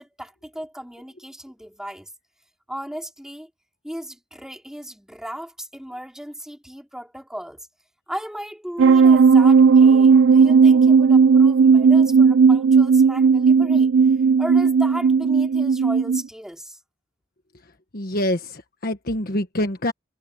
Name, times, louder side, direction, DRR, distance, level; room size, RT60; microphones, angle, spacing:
voice 1, 0.0-2.1 2.7-3.5 3.8-7.7 8.1-13.9 14.4-16.8, equal, 5° right, 4.2 m, -36 dB
sound 1, 8.8-16.2, right 5 dB, 70° right, 0.3 m, -14 dB
voice 2, 17.9-19.9, left 1 dB, 55° left, 1.4 m, -25 dB
head